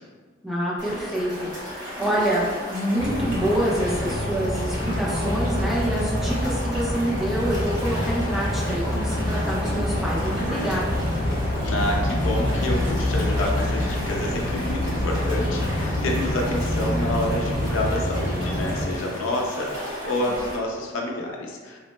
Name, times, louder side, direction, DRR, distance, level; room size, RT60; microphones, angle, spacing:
voice 1, 0.4-11.0, right 1 dB, ahead, -6 dB, 0.5 m, -26 dB
sound 1, 0.8-20.6, equal, 60° right, 1.3 m, -35 dB
sound 2, 3.0-18.9, left 1 dB, 40° left, 0.9 m, -26 dB
voice 2, 11.6-21.8, left 1 dB, 75° left, -1 dB, 0.5 m, -28 dB
3.1 x 2.0 x 3.1 m, 1.5 s
head